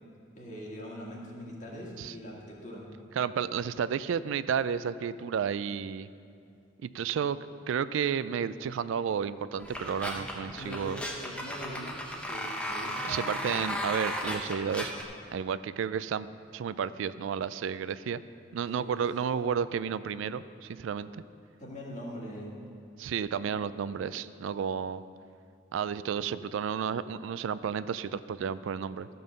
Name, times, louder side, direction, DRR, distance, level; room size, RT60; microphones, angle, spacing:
voice 1, 0.4-2.9 10.6-13.8 18.8-19.0 21.6-22.5, equal, 35° left, -3 dB, 1.8 m, -42 dB
voice 2, 3.2-6.1 6.8-7.4 7.7-11.0 13.0-14.9 15.3-16.3 16.5-18.2 18.5-21.2 23.0-25.0 25.7-29.1, right 7 dB, 75° right, 15 dB, 0.3 m, -32 dB
sound 1, 9.6-15.0, equal, 5° left, 0.8 m, -35 dB
13.5 x 5.4 x 6.5 m, 2.4 s
head